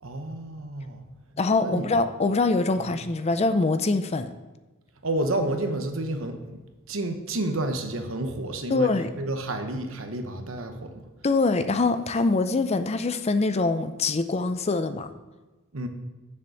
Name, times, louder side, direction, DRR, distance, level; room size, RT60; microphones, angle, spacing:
voice 1, 0.0-1.0 1.6-1.9 2.8-2.9 5.0-6.6 6.9-11.1 15.7-15.9, right 1 dB, 75° right, 6 dB, 1.1 m, -30 dB
voice 2, 1.4-4.3 8.7-9.1 11.2-15.1, left 3 dB, 30° left, 10 dB, 0.5 m, -24 dB
7.2 x 7.1 x 6.4 m, 1.2 s
head